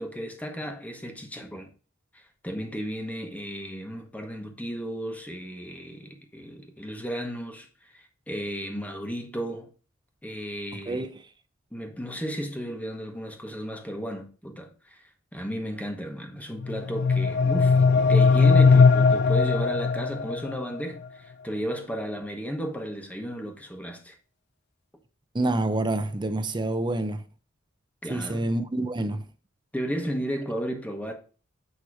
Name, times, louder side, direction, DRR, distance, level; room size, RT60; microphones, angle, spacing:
voice 1, 0.0-1.7 2.1-7.7 7.9-9.7 10.2-11.1 11.7-15.0 15.3-24.1 28.0-28.5 29.7-31.1, equal, 10° left, 1.1 m, -34 dB
sound 1, 16.6-20.6, left 4 dB, 60° left, 0.3 m, -19 dB
voice 2, 25.3-27.2 28.1-29.2, right 2 dB, 25° right, 0.6 m, -27 dB
8.5 x 3.1 x 4.7 m
head